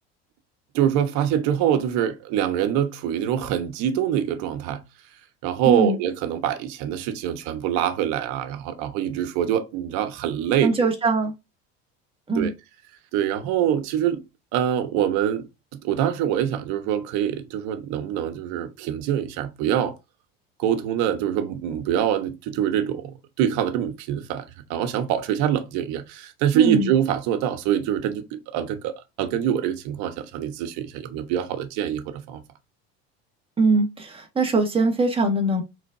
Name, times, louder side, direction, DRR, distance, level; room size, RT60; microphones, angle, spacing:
voice 1, 0.7-4.8 5.4-10.7 12.3-12.5 13.1-14.2 14.5-20.0 20.6-32.4, right 10 dB, 65° right, 1.2 m, -25 dB
voice 2, 5.6-6.0 10.6-11.3 12.3-12.5 26.5-26.9 33.6-35.6, right 3 dB, 20° right, 1.6 m, -22 dB
5.1 x 3.9 x 2.6 m
supercardioid pair, 125°, 31 cm